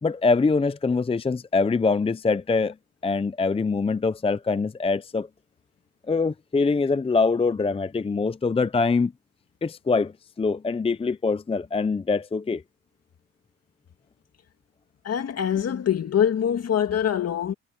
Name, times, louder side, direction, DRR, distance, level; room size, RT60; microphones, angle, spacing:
voice 1, 0.0-2.8 3.0-5.3 6.1-9.1 9.6-12.6, left 4 dB, 20° left, 0.6 m, -24 dB
voice 2, 15.0-17.5, left 9 dB, 55° left, 2.6 m, -24 dB
cardioid pair, 90°, 30 cm